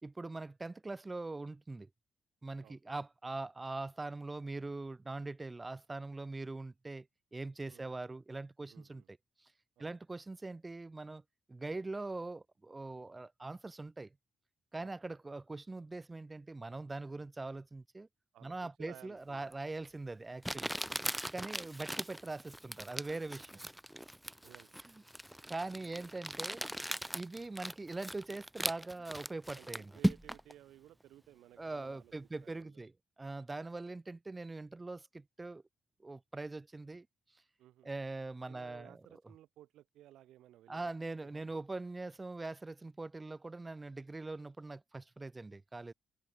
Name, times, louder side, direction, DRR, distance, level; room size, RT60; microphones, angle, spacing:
voice 1, 0.0-1.9 2.4-7.1 7.3-9.5 9.8-11.2 11.5-14.1 14.7-18.1 18.4-20.7 21.3-23.6 24.8-25.0 25.5-26.6 27.1-29.9 31.6-32.9 33.2-35.6 36.0-37.1 37.8-39.0 40.7-45.9, right 2 dB, 20° right, 4.1 m, -42 dB
voice 2, 8.7-9.1 9.8-10.0 14.8-15.0 18.3-19.5 23.5-23.6 24.4-24.7 25.6-25.8 29.6-32.1 32.4-32.7 33.6-33.7 37.6-37.9 38.5-41.6, right 13 dB, 80° right, 6.0 m, -58 dB
Crumpling crinkling, 19.5-19.6 20.4-30.5, equal, 5° right, 0.4 m, -39 dB
cardioid pair, 90°, 0 cm